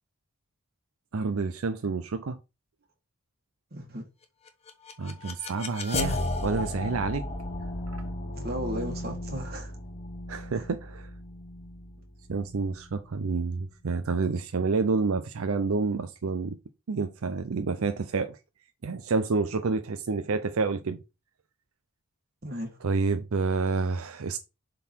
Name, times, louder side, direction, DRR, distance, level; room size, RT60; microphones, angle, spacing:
voice 1, 1.1-2.4 5.0-7.3 7.9-8.0 10.3-11.1 12.3-16.6 16.9-18.4 18.8-21.0 22.8-24.4, right 4 dB, 80° right, 0.5 m, -29 dB
voice 2, 3.7-4.1 8.4-9.7 10.5-10.6 22.4-22.8, equal, 45° right, 1.8 m, -35 dB
sound 1, 4.5-13.4, left 2 dB, 30° left, 0.9 m, -35 dB
7.2 x 3.9 x 4.4 m
head